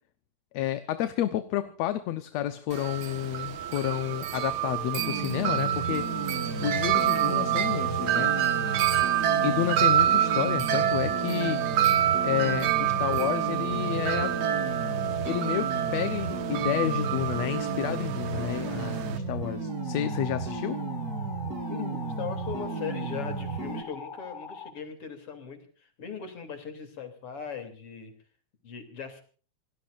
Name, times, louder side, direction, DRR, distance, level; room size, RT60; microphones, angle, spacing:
voice 1, 0.5-6.1 6.6-8.4 9.4-11.6 12.2-14.4 15.3-20.8, left 12 dB, 70° left, 10 dB, 2.1 m, -30 dB
Wind chime, 2.7-19.2, right 11 dB, 75° right, 2.9 m, -27 dB
sound 1, 5.0-23.8, right 4 dB, 35° right, 1.8 m, -34 dB
sound 2, 19.7-24.7, left 5 dB, 15° left, 2.2 m, -42 dB
voice 2, 21.5-28.1 28.6-29.2, left 7 dB, 50° left, 8 dB, 4.0 m, -39 dB
27.5 x 18.5 x 2.6 m, 0.41 s
omnidirectional pair, 3.4 m